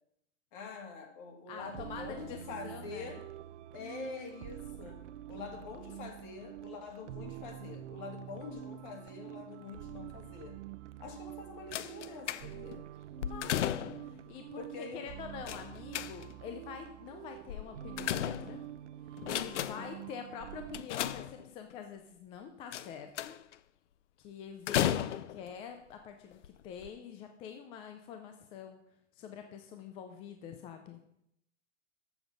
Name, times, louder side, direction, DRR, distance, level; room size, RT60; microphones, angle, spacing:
voice 1, 0.5-3.2 3.7-5.0 5.3-10.6 11.0-12.9 14.6-15.0 19.6-20.0, left 4 dB, 45° left, 4 dB, 2.0 m, -45 dB
voice 2, 1.5-3.2 13.3-13.8 14.0-18.6 19.2-23.4 24.2-28.8 29.2-31.0, left 7 dB, 15° left, 6 dB, 0.4 m, -46 dB
sound 1, 1.6-20.8, right 12 dB, 70° right, 0.5 m, -47 dB
sound 2, 11.7-12.8 13.2-14.2 15.5-16.5 17.5-18.8 19.2-20.0 20.7-21.7 22.7-23.5 24.7-25.5 26.3-26.5 26.8-26.9, left 12 dB, 70° left, 0.6 m, -35 dB
7.2 x 7.1 x 5.2 m, 0.76 s
hypercardioid pair, 135°, 37 cm